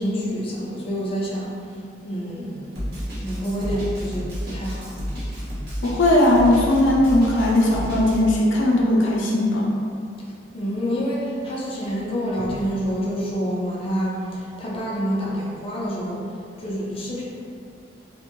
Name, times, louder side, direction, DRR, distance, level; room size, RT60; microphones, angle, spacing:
voice 1, 0.0-1.6 2.0-4.9 10.5-17.2, equal, 30° left, -6 dB, 0.4 m, -27 dB
Drum kit, 2.8-8.2, equal, 60° right, 0.8 m, -31 dB
voice 2, 5.8-9.7, left 1 dB, 90° left, -3 dB, 0.4 m, -18 dB
2.5 x 2.1 x 2.9 m, 2.4 s
head